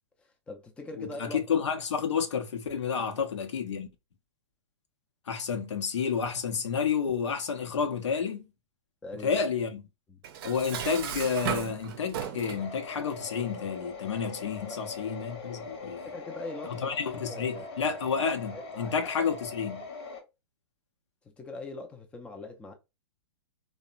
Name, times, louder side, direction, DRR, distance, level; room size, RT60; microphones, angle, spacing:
voice 1, 0.5-1.4 9.0-9.4 10.1-10.2 14.7-14.8 16.0-18.0 18.5-18.9 21.4-22.7, left 2 dB, 5° left, 0.4 m, -42 dB
voice 2, 1.0-3.9 5.3-8.5 9.2-9.8 10.4-16.0 16.7-19.9, left 6 dB, 75° left, 0.7 m, -30 dB
Dishes pots and pans, 10.2-12.7, right 9 dB, 50° right, 0.5 m, -35 dB
sound 1, 12.6-20.2, left 4 dB, 60° left, 1.0 m, -42 dB
2.7 x 2.1 x 2.4 m
hypercardioid pair, 125°, 15 cm